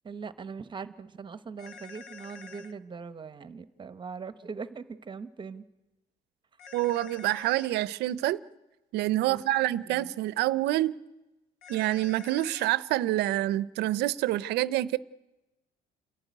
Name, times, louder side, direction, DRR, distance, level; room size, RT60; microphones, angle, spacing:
voice 1, 0.0-5.7 9.3-9.4 9.9-10.1, right 5 dB, 30° right, 13 dB, 1.0 m, -41 dB
sound 1, 1.6-2.7 6.6-7.7 11.6-12.8, left 5 dB, 90° left, 1.3 m, -47 dB
voice 2, 6.7-8.4 8.9-11.0 11.7-15.0, right 15 dB, 85° right, 18 dB, 0.6 m, -27 dB
28.5 x 11.5 x 9.4 m, 1.0 s
cardioid pair, 110°, 17 cm